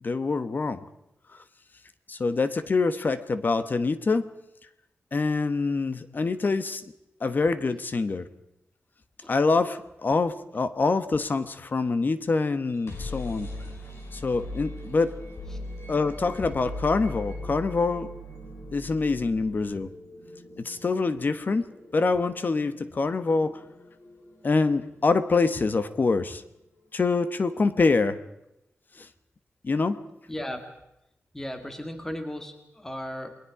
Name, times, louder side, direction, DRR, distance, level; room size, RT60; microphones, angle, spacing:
voice 1, 0.0-0.9 1.3-1.4 2.1-4.3 5.1-6.8 7.2-8.3 9.3-13.5 14.1-15.2 15.9-18.1 18.7-19.9 20.6-21.7 21.9-23.6 24.4-26.4 26.9-28.2 29.0-29.1 29.6-30.0, left 3 dB, 45° left, 12 dB, 1.2 m, -25 dB
sound 1, 12.6-26.4, left 1 dB, 65° left, 5.3 m, -41 dB
voice 2, 30.3-30.7 31.3-33.3, left 1 dB, 10° left, 6 dB, 2.1 m, -36 dB
29.0 x 21.5 x 4.9 m, 0.83 s
wide cardioid pair, 130°, 5 cm